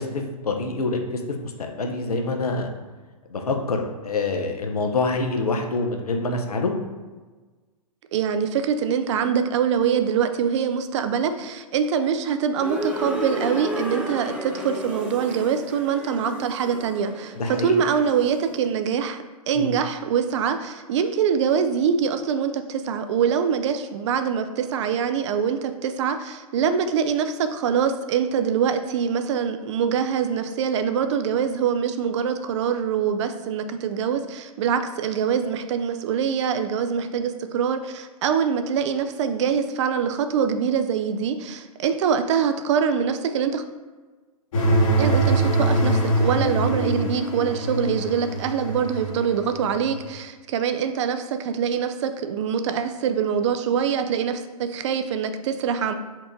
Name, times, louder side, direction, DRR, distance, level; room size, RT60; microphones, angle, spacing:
voice 1, 0.0-2.7 3.3-6.7 17.4-17.8 19.5-19.7, left 3 dB, 85° left, 3 dB, 0.7 m, -26 dB
voice 2, 8.1-43.6 45.0-55.9, right 7 dB, 50° right, 9 dB, 0.4 m, -24 dB
sound 1, 12.5-18.5, equal, 5° right, 0.7 m, -33 dB
sound 2, 44.5-50.0, right 1 dB, 60° left, 1.2 m, -23 dB
4.4 x 2.5 x 4.4 m, 1.3 s
hypercardioid pair, 115°, 19 cm